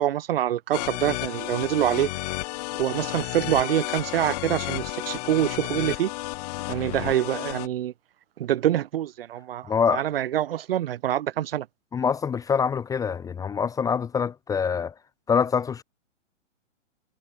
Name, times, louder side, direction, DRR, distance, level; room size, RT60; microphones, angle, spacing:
voice 1, 0.0-2.1 2.7-6.1 6.7-7.9 8.4-11.7, right 12 dB, 50° right, 1.9 m, -25 dB
sound 1, 0.7-7.7, left 22 dB, 30° left, 1.5 m, -32 dB
voice 2, 9.7-10.0 11.9-14.9 15.3-15.8, left 6 dB, 10° left, 1.1 m, -25 dB
figure-of-eight pair, 125°, 37 cm